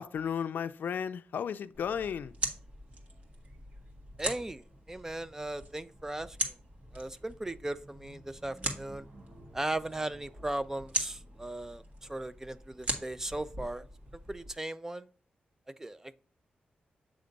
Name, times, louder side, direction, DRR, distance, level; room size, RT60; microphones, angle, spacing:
voice 1, 0.0-2.3, left 7 dB, 80° left, 0.4 m, -34 dB
sound 1, 1.7-14.5, right 1 dB, 50° right, 1.8 m, -41 dB
voice 2, 4.2-6.4 6.9-9.1 9.5-11.8 12.1-13.8 14.3-15.1 15.8-16.1, right 1 dB, 15° right, 0.4 m, -37 dB
7.9 x 3.4 x 5.2 m
wide cardioid pair, 120°, 3 cm